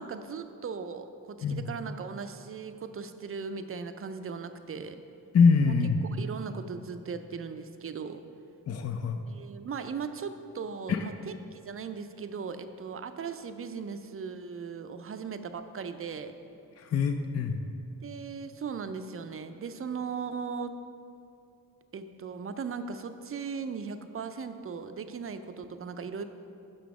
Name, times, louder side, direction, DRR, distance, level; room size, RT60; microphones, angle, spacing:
voice 1, 0.0-5.0 5.6-5.8 6.1-8.2 9.3-16.3 18.0-20.8 21.9-26.2, right 5 dB, 40° right, 9 dB, 0.4 m, -38 dB
voice 2, 5.3-6.1 8.7-9.2 10.9-11.0 16.8-17.6, left 5 dB, 45° left, 6 dB, 0.4 m, -24 dB
6.0 x 5.0 x 4.7 m, 2.6 s
cardioid pair, 60°, 37 cm